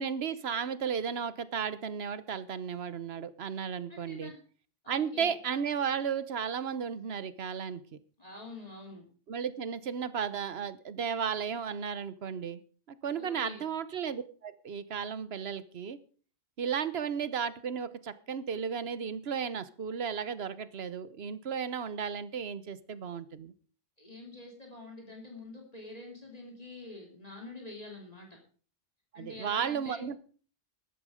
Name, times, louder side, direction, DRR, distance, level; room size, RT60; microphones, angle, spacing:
voice 1, 0.0-4.3 4.9-7.8 9.3-12.6 13.0-16.0 16.6-23.5 29.1-30.2, right 7 dB, 75° right, 15 dB, 1.2 m, -34 dB
voice 2, 3.9-4.4 4.8-5.3 8.2-9.1 13.2-13.7 24.0-28.4 29.1-30.0, left 2 dB, 35° left, 0 dB, 2.7 m, -46 dB
14.0 x 11.5 x 5.0 m, 0.41 s
omnidirectional pair, 1.1 m